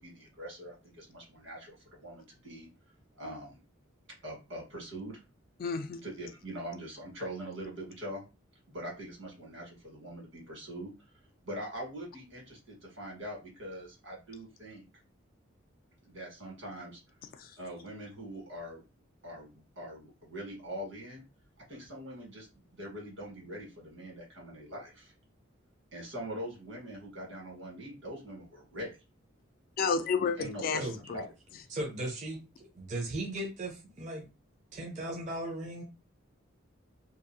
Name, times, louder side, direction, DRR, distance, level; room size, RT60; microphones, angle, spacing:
voice 1, 0.0-2.7 3.1-3.6 4.2-5.2 6.0-8.2 8.7-10.9 11.4-14.8 16.0-17.0 17.6-18.8 19.2-21.2 21.7-22.5 22.7-25.1 25.9-28.9 30.4-31.3, equal, 80° right, 1.5 m, -43 dB
voice 2, 5.6-6.0 17.4-17.5 29.8-30.8 31.1-31.2, left 5 dB, 45° left, 0.3 m, -30 dB
voice 3, 31.7-34.3 34.7-35.8, right 1 dB, 40° right, 0.5 m, -37 dB
2.7 x 2.3 x 2.6 m
head